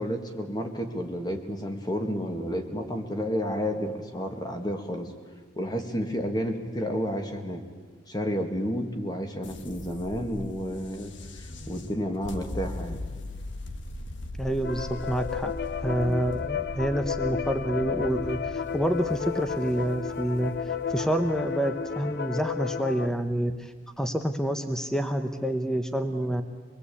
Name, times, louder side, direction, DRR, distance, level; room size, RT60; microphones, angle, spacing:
voice 1, 0.0-5.1 5.6-7.6 8.1-13.0, equal, 20° left, 5 dB, 2.0 m, -31 dB
sound 1, 9.4-23.6, left 1 dB, 75° left, 1.4 m, -40 dB
voice 2, 14.4-15.5 15.8-20.5 20.9-26.4, right 1 dB, 5° left, 7 dB, 1.0 m, -28 dB
sound 2, 14.6-23.1, left 7 dB, 55° left, 0.8 m, -32 dB
26.5 x 21.0 x 8.5 m, 1.5 s
head